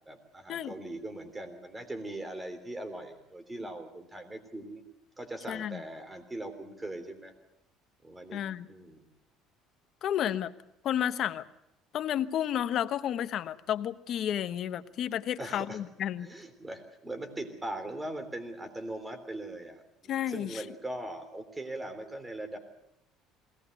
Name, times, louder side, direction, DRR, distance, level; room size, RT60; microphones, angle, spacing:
voice 1, 0.0-4.8 5.2-7.3 8.0-9.1 15.4-15.8 16.2-22.6, right 1 dB, 15° right, 8 dB, 3.3 m, -40 dB
voice 2, 5.5-5.8 8.3-8.7 10.0-10.5 10.8-11.4 11.9-16.3 20.1-20.6, left 10 dB, 50° left, 11 dB, 1.1 m, -31 dB
21.5 x 18.5 x 8.0 m, 0.84 s
cardioid pair, 135°, 0 cm